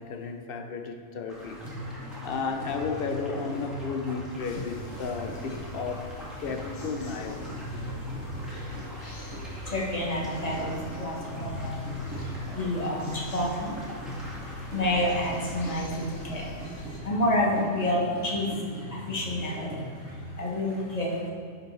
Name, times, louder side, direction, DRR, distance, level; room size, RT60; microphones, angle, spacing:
voice 1, 0.0-1.7 2.0-7.8, left 5 dB, 60° left, 6 dB, 0.6 m, -34 dB
sound 1, 1.3-15.8, equal, ahead, 1.8 m, -46 dB
sound 2, 1.6-20.6, equal, 80° right, 1.4 m, -39 dB
sound 3, 4.4-17.0, left 2 dB, 75° left, 1.4 m, -45 dB
voice 2, 8.9-9.3 9.6-21.3, left 1 dB, 30° left, -3 dB, 1.3 m, -30 dB
10.5 x 5.1 x 3.2 m, 2.3 s
omnidirectional pair, 1.3 m